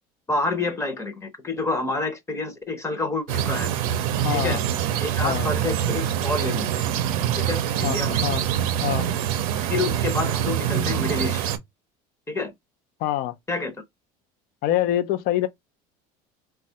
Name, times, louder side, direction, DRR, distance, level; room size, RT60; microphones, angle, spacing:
voice 1, 0.3-3.7 4.3-4.6 5.0-6.9 7.4-8.2 9.6-11.4 12.3-12.5 13.5-13.8, left 3 dB, 15° left, 0.7 m, -28 dB
sound 1, 3.3-11.6, right 10 dB, 90° right, 0.5 m, -25 dB
voice 2, 4.2-4.6 5.2-5.5 7.8-8.4 8.8-9.1 13.0-13.3 14.6-15.5, left 13 dB, 60° left, 0.5 m, -25 dB
3.0 x 2.3 x 2.7 m
supercardioid pair, 115°, 18 cm